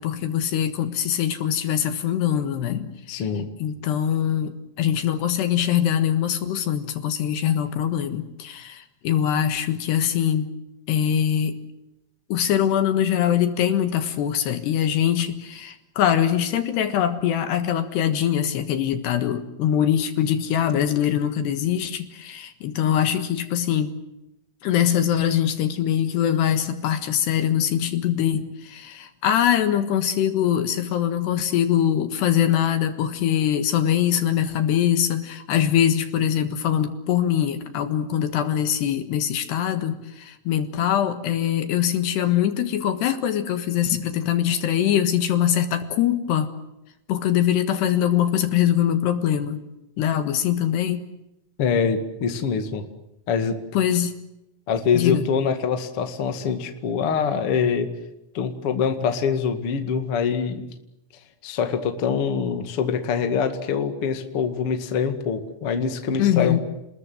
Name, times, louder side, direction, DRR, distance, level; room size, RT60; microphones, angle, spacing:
voice 1, 0.0-3.3 3.6-10.5 10.9-11.6 12.3-23.9 24.6-46.5 47.1-49.6 50.0-51.1 53.7-54.2 54.9-55.2 66.2-66.6, left 10 dB, 65° left, 9 dB, 3.2 m, -23 dB
voice 2, 3.1-3.5 51.6-52.8 53.3-53.6 54.7-57.9 58.3-60.7 61.4-66.6, left 6 dB, 50° left, 6 dB, 1.7 m, -24 dB
30.0 x 21.0 x 7.8 m, 0.87 s
omnidirectional pair, 5.9 m